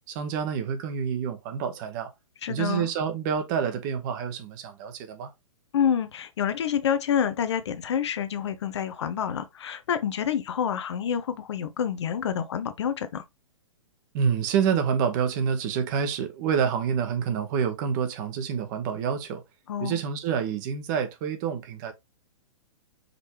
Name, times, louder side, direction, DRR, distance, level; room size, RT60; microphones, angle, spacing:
voice 1, 0.1-2.1 2.5-5.3 14.1-19.4 19.8-21.9, right 7 dB, 35° right, 1.0 m, -27 dB
voice 2, 2.4-2.9 5.7-13.2 19.7-20.0, left 8 dB, 55° left, 0.7 m, -28 dB
5.1 x 3.2 x 2.9 m
figure-of-eight pair, 115°, 17 cm